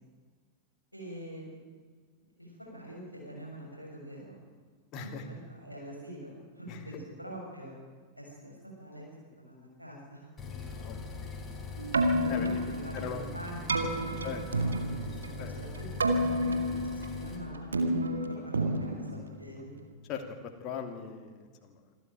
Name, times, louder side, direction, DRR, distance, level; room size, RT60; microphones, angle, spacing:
voice 1, 0.9-1.6 2.4-4.4 5.0-7.7 8.2-9.1 9.4-10.3 12.2-13.6 14.0-14.9 15.6-17.8 18.3-19.7, equal, 90° right, -1 dB, 7.0 m, -45 dB
voice 2, 4.9-5.3 6.7-7.0 10.7-11.2 12.3-12.6 12.9-13.2 14.2-14.4 15.4-15.5 20.1-22.0, left 7 dB, 40° left, 4 dB, 2.7 m, -40 dB
sound 1, 10.4-17.4, left 4 dB, 20° left, 4.4 m, -42 dB
Keyboard (musical), 11.8-19.9, right 1 dB, 75° right, 1.9 m, -31 dB
26.5 x 13.0 x 9.1 m, 1.5 s
figure-of-eight pair, 90°, 0 cm